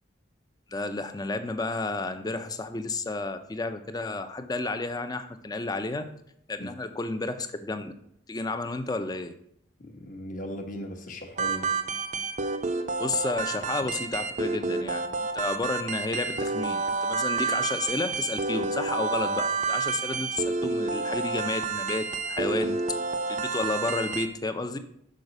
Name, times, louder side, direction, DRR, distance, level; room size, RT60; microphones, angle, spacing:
voice 1, 0.7-6.1 6.5-7.9 8.3-9.4 13.0-15.1 15.3-22.8 23.3-24.8, left 3 dB, 20° left, 9 dB, 0.5 m, -31 dB
voice 2, 9.8-11.8, equal, 45° left, 4 dB, 1.1 m, -38 dB
sound 1, 11.4-24.3, right 4 dB, 45° right, 0.5 m, -29 dB
6.3 x 4.8 x 5.4 m, 0.73 s
head